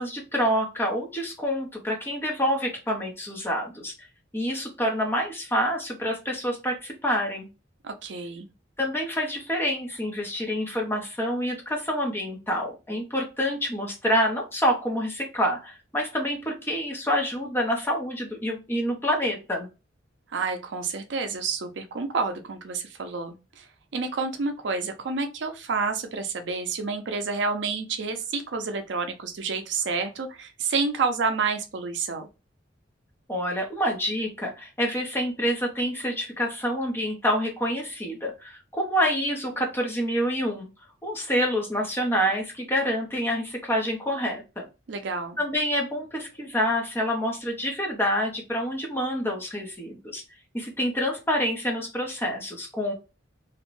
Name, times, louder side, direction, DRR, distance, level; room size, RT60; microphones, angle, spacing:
voice 1, 0.0-3.9 4.3-7.5 8.8-19.7 33.3-40.7 41.0-44.7 45.4-50.2 50.5-52.9, equal, 10° left, 0 dB, 0.6 m, -27 dB
voice 2, 7.8-8.5 20.3-23.7 23.9-32.3 44.9-45.4, right 4 dB, 65° right, 7 dB, 0.4 m, -29 dB
2.5 x 2.1 x 3.0 m, 0.29 s
head